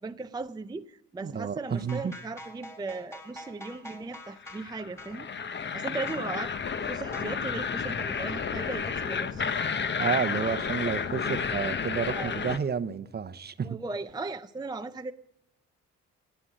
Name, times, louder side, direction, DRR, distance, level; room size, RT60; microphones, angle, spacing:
voice 1, 0.0-5.3 5.6-6.5 6.9-9.6 12.1-12.3 13.6-15.1, right 3 dB, 15° right, 0.5 m, -37 dB
voice 2, 1.2-2.1 10.0-13.8, right 6 dB, 35° right, 0.8 m, -31 dB
sound 1, 1.8-4.7 5.0-5.2 6.1-6.3 7.1-7.5, left 1 dB, 10° left, 3.2 m, -45 dB
sound 2, 4.4-12.6, left 6 dB, 35° left, 1.0 m, -31 dB
17.5 x 9.2 x 7.5 m
cardioid pair, 90°, 30 cm